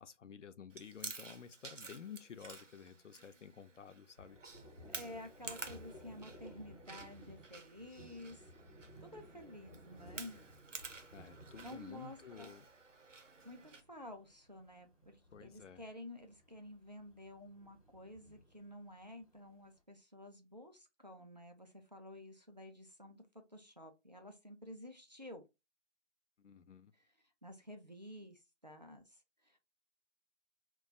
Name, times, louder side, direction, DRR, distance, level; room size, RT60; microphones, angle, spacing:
voice 1, 0.0-4.4 11.1-12.7 15.3-15.8 26.4-26.9, left 7 dB, 80° left, 0.5 m, -52 dB
Chewing mastication, 0.7-13.8, right 4 dB, 90° right, 0.7 m, -52 dB
Thunder, 4.2-19.7, equal, 30° left, 0.5 m, -58 dB
voice 2, 4.9-8.4 9.0-10.4 11.6-12.5 13.4-25.4 27.4-29.7, left 1 dB, 40° right, 0.4 m, -52 dB
2.3 x 2.2 x 3.8 m
figure-of-eight pair, 155°, 36 cm